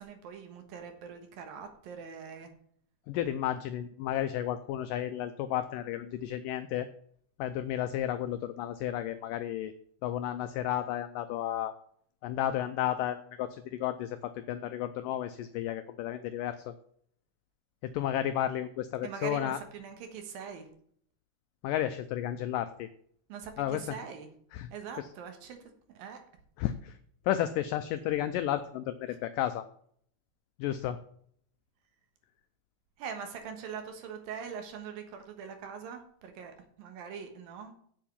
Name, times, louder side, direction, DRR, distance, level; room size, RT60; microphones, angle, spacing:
voice 1, 0.0-2.5 19.0-20.7 23.3-24.3 24.7-25.6 25.9-26.2 33.0-37.7, right 7 dB, 70° right, 6 dB, 2.9 m, -42 dB
voice 2, 3.1-6.9 7.4-9.7 10.0-11.7 12.2-16.7 17.8-19.6 21.6-22.9 23.6-23.9 24.5-24.7 25.0-25.1 26.6-27.0 27.3-29.6 30.6-31.0, left 11 dB, 85° left, 10 dB, 1.9 m, -32 dB
7.9 x 7.5 x 7.2 m, 0.63 s
omnidirectional pair, 4.5 m